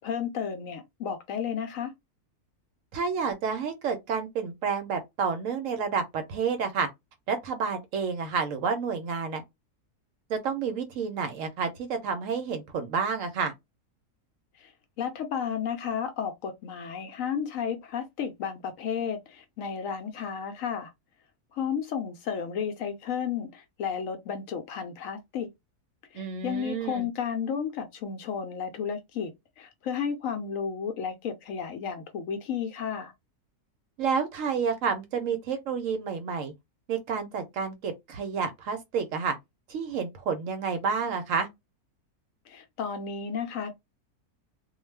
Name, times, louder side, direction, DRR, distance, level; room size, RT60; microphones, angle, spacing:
voice 1, 0.0-1.9 14.6-14.7 15.0-20.9 21.5-25.5 26.1-29.3 29.6-33.1 42.5-43.7, left 7 dB, 70° left, 0.9 m, -32 dB
voice 2, 2.9-6.9 7.3-9.4 10.3-13.5 26.1-27.1 34.0-36.5 36.9-39.4 39.7-41.5, right 5 dB, 70° right, 0.8 m, -30 dB
2.3 x 2.2 x 3.2 m
omnidirectional pair, 1.6 m